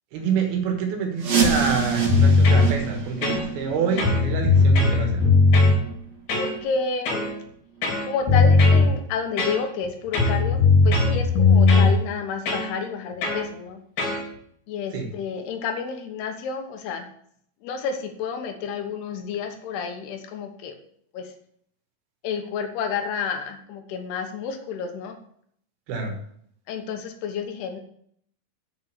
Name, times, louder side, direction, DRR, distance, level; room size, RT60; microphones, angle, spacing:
voice 1, 0.1-5.3 14.9-15.1 25.9-26.2, right 5 dB, 70° right, 3 dB, 3.2 m, -27 dB
sound 1, 1.2-6.8 7.1-7.2 7.8-7.9 8.5-8.6 9.1-9.2, right 5 dB, 45° right, 2.4 m, -28 dB
sound 2, 2.1-2.7 3.2-3.7 4.0-5.8 6.3-6.5 7.1-7.3 7.8-8.9 9.4-9.8 10.1-11.9 12.5-12.7 13.2-13.4 14.0-14.2, left 4 dB, 65° left, 4.2 m, -18 dB
voice 2, 6.4-7.3 8.1-13.8 14.7-17.1 17.6-20.8 21.1-21.3 22.2-25.2 26.7-27.8, left 5 dB, 80° left, 6 dB, 3.1 m, -30 dB
7.5 x 6.6 x 6.7 m, 0.66 s
omnidirectional pair, 4.7 m